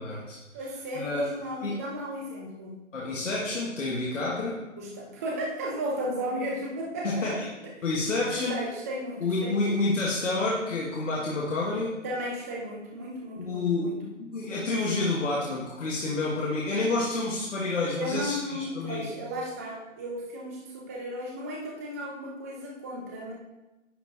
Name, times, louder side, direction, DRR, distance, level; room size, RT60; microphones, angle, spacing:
voice 1, 0.0-0.4 0.9-1.2 1.6-1.8 2.9-4.6 7.0-7.5 7.8-8.6 9.2-12.0 13.4-19.0, left 2 dB, 75° left, -5 dB, 1.6 m, -29 dB
voice 2, 0.5-2.8 4.8-7.7 8.3-9.7 12.0-14.1 18.0-23.3, equal, 15° right, -2 dB, 0.5 m, -35 dB
10.0 x 4.3 x 2.8 m, 1.0 s
hypercardioid pair, 145°, 38 cm